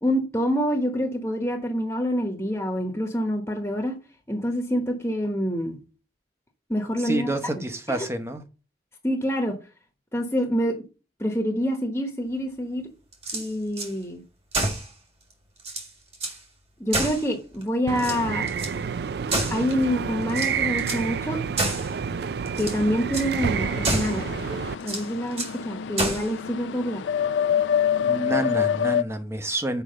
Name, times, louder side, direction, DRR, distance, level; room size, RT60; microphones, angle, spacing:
voice 1, 0.0-3.9 4.3-5.8 6.7-7.3 7.9-8.1 9.0-9.6 10.1-10.8 11.2-12.8 13.3-14.2 16.8-18.5 19.5-21.4 22.6-24.3 24.8-27.0, equal, 15° left, 1.0 m, -26 dB
voice 2, 7.0-8.4 28.0-29.8, right 1 dB, 15° right, 0.8 m, -28 dB
sound 1, 13.1-13.9 14.5-14.9 15.3-15.4 15.6-16.4 16.9-17.6 18.0-18.8 19.3-19.9 20.3-21.1 21.6-21.9 22.5-22.8 23.1-23.3 23.8-24.2 24.8-25.6 26.0-26.3, right 2 dB, 35° right, 1.8 m, -29 dB
sound 2, 17.9-24.7, right 6 dB, 60° right, 0.3 m, -29 dB
sound 3, 23.6-29.0, left 8 dB, 85° left, 0.4 m, -26 dB
6.8 x 4.9 x 6.5 m
head